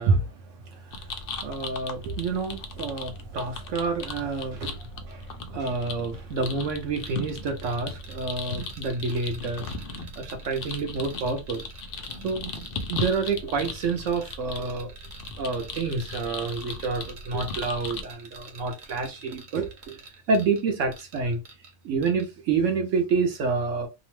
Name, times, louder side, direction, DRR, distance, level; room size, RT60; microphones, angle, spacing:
voice 1, 0.0-9.7 10.1-11.6 12.2-12.5 12.9-14.9 15.4-20.0 20.3-21.4 21.8-23.9, right 4 dB, 70° right, 0.9 m, -28 dB
sound 1, 0.9-18.0, left 3 dB, 80° left, 0.5 m, -38 dB
sound 2, 7.1-21.7 22.0-22.3, right 3 dB, 45° right, 0.6 m, -48 dB
2.8 x 2.0 x 2.9 m
omnidirectional pair, 1.5 m